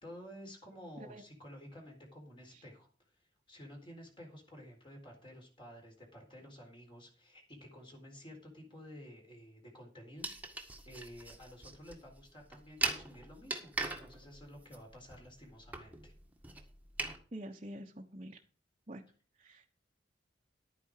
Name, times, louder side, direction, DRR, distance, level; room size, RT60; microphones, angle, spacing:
voice 1, 0.0-16.1, equal, 30° left, 0 dB, 4.0 m, -52 dB
sound 1, 10.2-17.2, right 3 dB, 10° right, 1.7 m, -41 dB
voice 2, 17.3-18.4 18.9-19.0 19.4-19.7, right 1 dB, 35° right, -1 dB, 1.2 m, -46 dB
11.5 x 9.4 x 4.9 m, 0.39 s
head